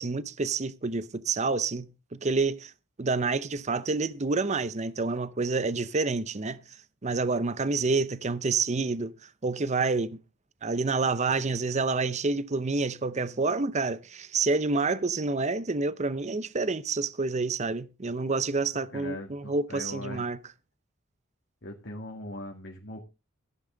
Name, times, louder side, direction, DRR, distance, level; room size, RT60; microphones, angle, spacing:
voice 1, 0.0-2.7 3.0-6.6 7.0-9.1 9.4-10.2 10.6-20.4, right 3 dB, 35° right, 0.7 m, -28 dB
voice 2, 18.7-20.3 21.6-23.0, left 2 dB, 55° left, 2.2 m, -40 dB
15.0 x 10.0 x 3.9 m
head